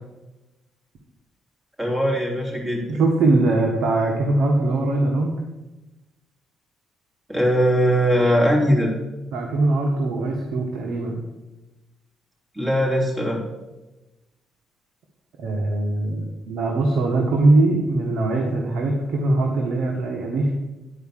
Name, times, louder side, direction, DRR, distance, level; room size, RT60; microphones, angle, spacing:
voice 1, 1.8-3.0 7.3-8.9 12.6-13.4, equal, 15° right, -2 dB, 3.5 m, -20 dB
voice 2, 2.9-5.4 9.3-11.2 15.4-20.5, right 2 dB, 80° right, 1 dB, 1.4 m, -21 dB
10.5 x 4.8 x 7.4 m, 1.1 s
cardioid pair, 90°, 0 cm